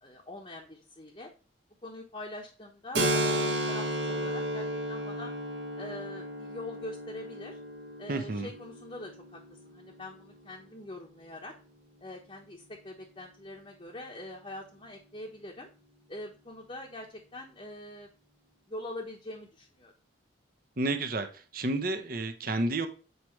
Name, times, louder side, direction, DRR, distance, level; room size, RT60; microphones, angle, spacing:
voice 1, 0.0-1.3 1.8-5.3 5.8-7.6 8.0-9.4 9.7-11.5 12.0-15.7 16.1-18.1 18.7-19.9, left 1 dB, 30° left, -1 dB, 1.0 m, -43 dB
Keyboard (musical), 2.9-10.3, right 1 dB, 65° right, 1.5 m, -33 dB
voice 2, 8.1-8.5 20.8-21.3 21.5-22.9, right 2 dB, 50° right, 8 dB, 0.9 m, -30 dB
8.1 x 4.7 x 3.2 m, 0.36 s
head